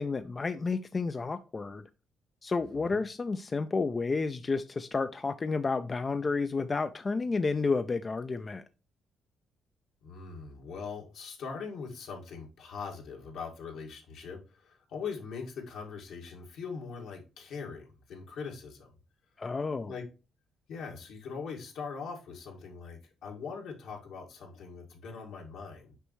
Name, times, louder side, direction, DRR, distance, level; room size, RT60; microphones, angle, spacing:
voice 1, 0.0-1.8 2.4-8.6 19.4-19.9, left 4 dB, 30° left, 0.4 m, -31 dB
voice 2, 10.0-18.9 19.9-20.1 20.7-26.0, left 5 dB, 80° left, 2.0 m, -41 dB
6.7 x 5.2 x 3.1 m
cardioid pair, 90°, 0 cm